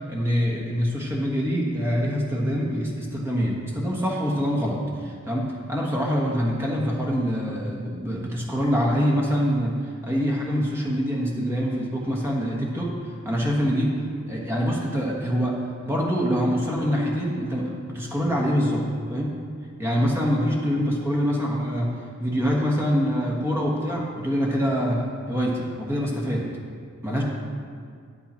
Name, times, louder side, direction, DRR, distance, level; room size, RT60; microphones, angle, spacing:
voice 1, 0.1-9.7 10.0-14.0 14.3-19.4 19.8-26.5 27.0-27.2, equal, 10° right, -3 dB, 1.3 m, -25 dB
9.2 x 8.5 x 4.4 m, 2.1 s
head